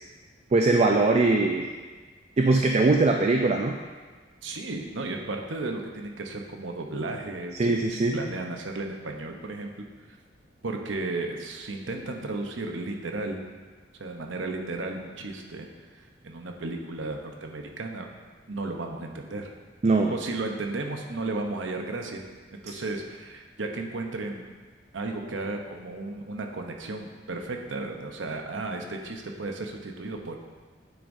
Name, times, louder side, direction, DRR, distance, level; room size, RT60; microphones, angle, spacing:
voice 1, 0.5-1.7 2.4-3.8 7.5-8.2 19.8-20.1, right 3 dB, 35° right, 3 dB, 0.4 m, -21 dB
voice 2, 4.4-9.9 10.6-13.4 14.0-15.7 16.2-18.1 18.5-19.5 20.1-22.2 22.6-24.5 24.9-30.4, right 2 dB, 75° right, 3 dB, 0.8 m, -34 dB
9.2 x 7.1 x 2.7 m, 1.4 s
head